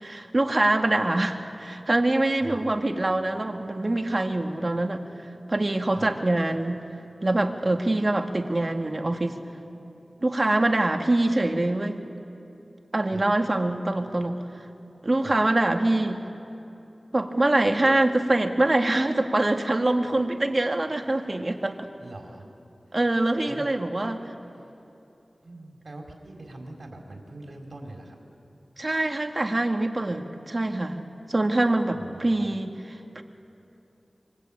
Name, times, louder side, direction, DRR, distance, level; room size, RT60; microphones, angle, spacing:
voice 1, 0.0-5.0 5.5-6.8 7.2-9.4 10.2-12.0 12.9-14.4 15.0-16.2 17.1-21.9 22.9-24.2 28.8-33.2, right 2 dB, 40° right, 4 dB, 2.0 m, -24 dB
voice 2, 2.4-2.7 5.9-6.1 13.1-13.2 15.2-15.3 22.0-22.5 23.5-23.7 24.0-24.1 25.4-28.2 31.9-32.5, right 2 dB, 65° right, 1 dB, 4.5 m, -42 dB
26.0 x 25.5 x 8.8 m, 2.8 s
wide cardioid pair, 70°, 0 cm